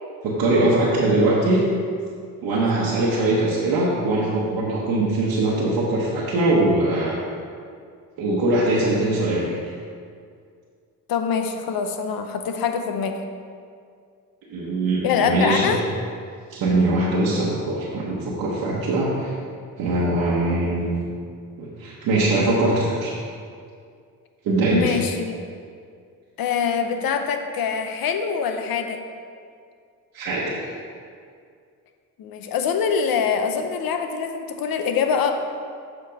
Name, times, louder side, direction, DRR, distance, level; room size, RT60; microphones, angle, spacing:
voice 1, 0.2-1.7 2.4-7.1 8.2-9.7 14.5-15.7 16.5-19.3 19.8-21.0 21.6-23.1 24.4-25.0 30.1-30.7, right 2 dB, 80° right, -6 dB, 1.1 m, -22 dB
voice 2, 11.1-13.1 15.0-15.8 24.7-25.4 26.4-29.0 32.2-35.3, left 6 dB, 70° left, 6 dB, 0.8 m, -24 dB
6.9 x 4.5 x 5.2 m, 2.2 s
supercardioid pair, 70°, 36 cm